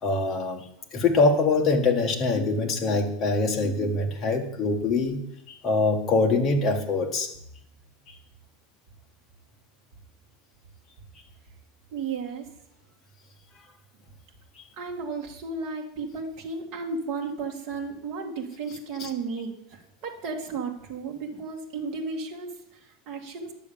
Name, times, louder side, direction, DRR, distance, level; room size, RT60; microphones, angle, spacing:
voice 1, 0.0-5.2 5.6-7.3 8.1-8.2 14.6-14.7 19.0-19.1, left 3 dB, 20° left, 2 dB, 1.4 m, -24 dB
voice 2, 11.9-12.5 14.8-23.5, right 4 dB, 40° right, 2 dB, 2.0 m, -34 dB
10.5 x 6.9 x 6.9 m, 0.76 s
supercardioid pair, 170°, 0 cm